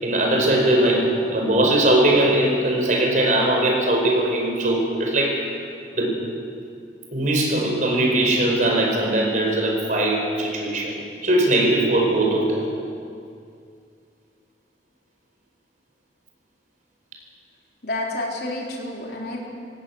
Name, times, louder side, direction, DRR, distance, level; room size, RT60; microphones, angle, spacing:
voice 1, 0.0-5.6 5.9-6.3 7.1-12.7, right 1 dB, 45° right, 0 dB, 4.7 m, -20 dB
voice 2, 17.8-19.4, left 2 dB, 60° left, -2 dB, 4.0 m, -29 dB
18.0 x 17.0 x 8.8 m, 2.4 s
head